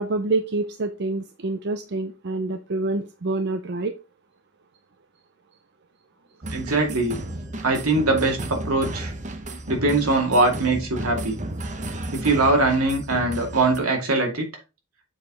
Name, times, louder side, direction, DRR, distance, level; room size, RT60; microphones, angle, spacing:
voice 1, 0.0-3.9, right 2 dB, 50° right, 0.6 m, -27 dB
sound 1, 6.4-13.8, right 1 dB, 35° right, 0.9 m, -33 dB
voice 2, 6.5-7.2 7.6-9.1 9.7-11.4 12.1-14.5, right 2 dB, 80° right, 2.5 m, -22 dB
7.4 x 4.8 x 3.8 m
head